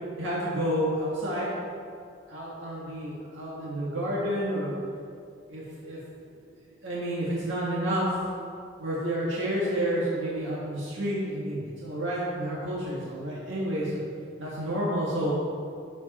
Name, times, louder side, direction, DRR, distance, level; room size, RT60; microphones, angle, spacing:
voice 1, 0.2-1.5 2.3-4.8 5.5-6.0 6.3-6.4 6.8-8.1 8.8-14.0 14.4-15.3, right 1 dB, 70° right, -6 dB, 1.8 m, -30 dB
12.5 x 5.0 x 4.3 m, 2.4 s
head